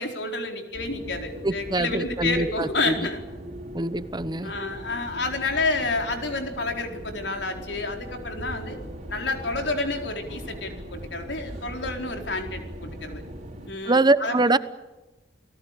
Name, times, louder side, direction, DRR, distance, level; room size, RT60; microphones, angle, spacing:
voice 1, 0.0-3.2 4.4-8.8 9.1-13.2 13.7-14.4, left 3 dB, 85° left, 4 dB, 4.4 m, -29 dB
sound 1, 0.7-13.7, equal, 45° right, 6.3 m, -40 dB
voice 2, 1.4-3.1 3.7-4.5 13.9-14.6, right 2 dB, 25° right, 14 dB, 0.9 m, -23 dB
29.5 x 18.5 x 8.4 m, 1.1 s
head